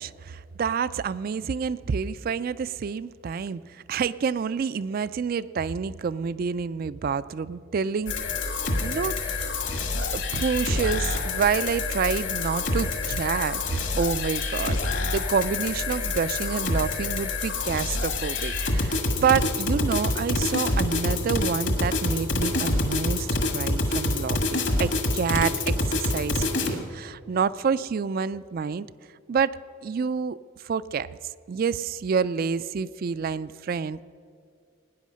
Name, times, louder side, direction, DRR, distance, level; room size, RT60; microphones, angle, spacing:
voice 1, 0.0-8.2 8.8-9.6 10.0-19.0 19.2-28.9 29.3-31.1 31.5-34.0, right 6 dB, 45° right, 16 dB, 0.3 m, -28 dB
sound 1, 8.1-26.7, left 2 dB, 60° left, 1.7 m, -27 dB
18.0 x 9.9 x 6.3 m, 2.3 s
head